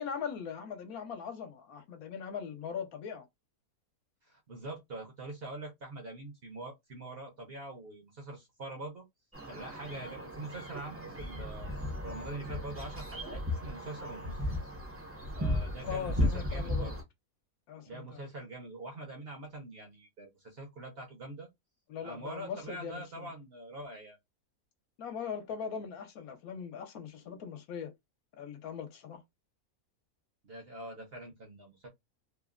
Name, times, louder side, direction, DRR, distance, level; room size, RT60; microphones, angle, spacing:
voice 1, 0.0-3.3 15.8-16.9 17.7-18.2 21.9-23.3 25.0-27.9 28.4-29.2, left 7 dB, 75° left, 1.1 m, -40 dB
voice 2, 4.2-9.0 9.4-11.7 12.0-14.3 15.3-17.0 17.9-21.5 22.0-24.2 30.4-31.9, right 2 dB, 50° right, 0.8 m, -44 dB
sound 1, 9.3-17.0, left 1 dB, 15° right, 0.4 m, -35 dB
3.0 x 2.1 x 2.4 m
omnidirectional pair, 1.6 m